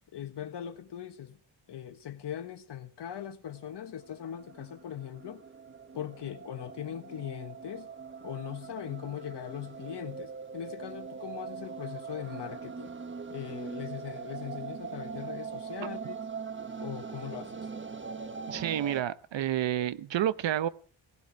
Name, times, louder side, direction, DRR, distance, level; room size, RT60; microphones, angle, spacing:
voice 1, 0.1-1.4 1.7-5.4 5.9-7.9 8.2-12.9 13.3-16.2 16.8-17.7, left 10 dB, 65° left, 1.4 m, -40 dB
sound 1, 3.5-19.0, right 5 dB, 25° right, 1.2 m, -42 dB
voice 2, 18.5-20.7, right 11 dB, 70° right, 0.9 m, -29 dB
18.0 x 16.0 x 4.6 m
cardioid pair, 115°, 45 cm